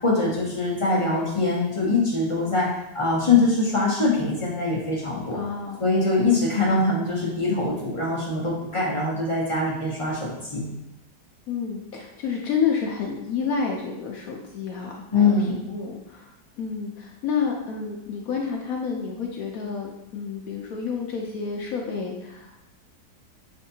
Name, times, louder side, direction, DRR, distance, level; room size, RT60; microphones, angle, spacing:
voice 1, 0.0-5.4 5.8-10.6 15.1-15.5, left 3 dB, 45° left, -6 dB, 0.4 m, -23 dB
voice 2, 5.3-5.8 6.2-6.4 11.5-16.3 16.6-22.7, left 6 dB, 70° left, 0 dB, 0.9 m, -29 dB
6.4 x 2.6 x 2.7 m, 0.91 s
omnidirectional pair, 1.8 m